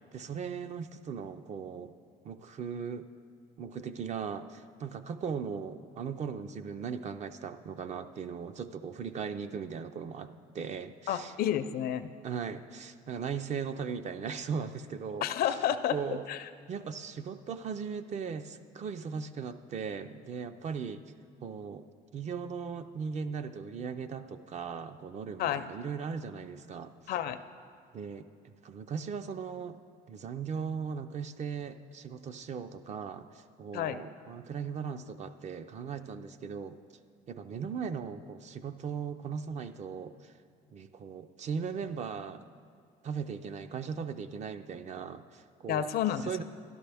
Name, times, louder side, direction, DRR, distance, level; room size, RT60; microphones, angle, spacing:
voice 1, 0.1-1.9 2.2-3.1 3.6-11.3 12.2-15.6 15.9-16.3 16.7-21.2 21.4-21.9 22.1-27.1 27.9-29.8 30.1-36.8 37.3-40.3 40.7-42.4 43.0-45.9 46.3-46.4, right 6 dB, 45° right, 10 dB, 0.5 m, -38 dB
voice 2, 11.1-12.1 15.2-16.0 16.3-16.4 25.4-25.6 27.1-27.4 33.7-34.0 45.7-46.4, left 10 dB, 65° left, 12 dB, 0.5 m, -30 dB
12.5 x 11.5 x 3.4 m, 2.3 s
cardioid pair, 110°, 17 cm